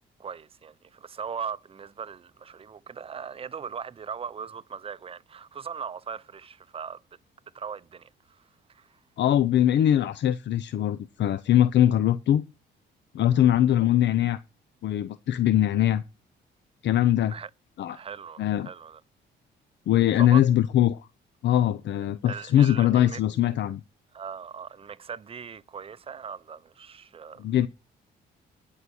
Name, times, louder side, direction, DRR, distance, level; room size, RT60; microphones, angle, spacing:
voice 1, 0.2-7.0 7.5-8.4 8.7-9.0 17.3-17.5 17.9-19.0 20.2-20.4 22.3-23.2 24.1-27.7, right 7 dB, 30° right, 0.6 m, -39 dB
voice 2, 9.2-12.4 13.1-14.4 14.8-16.0 16.8-17.3 17.8-18.0 18.4-18.7 19.9-21.1 21.4-23.8 27.4-27.7, left 11 dB, 65° left, 0.6 m, -22 dB
11.0 x 5.6 x 6.4 m
cardioid pair, 90°, 20 cm